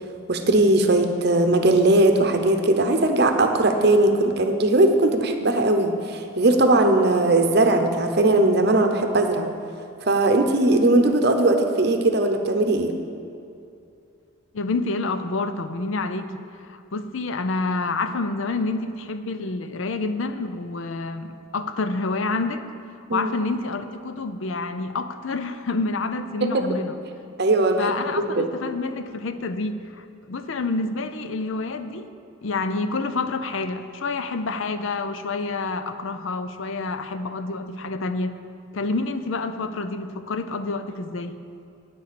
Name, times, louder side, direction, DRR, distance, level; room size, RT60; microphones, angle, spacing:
voice 1, 0.3-9.5 10.1-12.9 23.1-23.3 26.4-26.6 27.4-28.4, right 2 dB, 50° right, 5 dB, 0.8 m, -19 dB
voice 2, 14.5-16.3 16.6-22.6 23.1-27.0 27.8-32.1 32.4-38.3 38.7-41.4, left 3 dB, 65° left, 10 dB, 0.5 m, -28 dB
9.3 x 6.6 x 6.8 m, 2.5 s
head